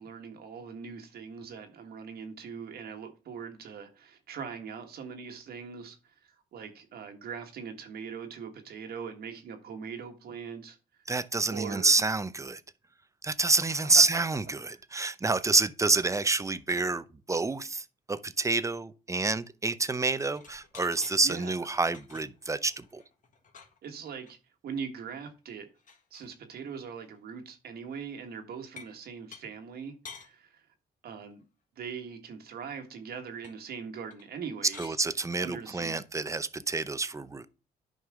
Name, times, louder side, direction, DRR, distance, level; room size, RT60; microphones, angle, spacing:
voice 1, 0.0-6.0 6.5-10.8 11.5-12.0 13.9-14.0 21.2-21.6 23.8-24.4 24.6-25.7 26.1-30.6 31.0-31.4 31.8-35.0 35.4-36.0, right 6 dB, 75° right, 1.6 m, -41 dB
voice 2, 11.1-12.6 13.2-23.0 34.8-37.5, right 3 dB, 20° right, 0.7 m, -28 dB
sound 1, 20.3-21.2 21.6-24.3 24.8-24.9 25.1-25.2 25.5-26.4 27.0-27.2 28.8-29.0 29.3-29.4 30.0-30.3 33.4-33.6 34.1-34.3 34.6-35.0 36.2-36.3, left 5 dB, 55° left, 1.6 m, -50 dB
9.6 x 5.4 x 3.7 m
cardioid pair, 85°, 16 cm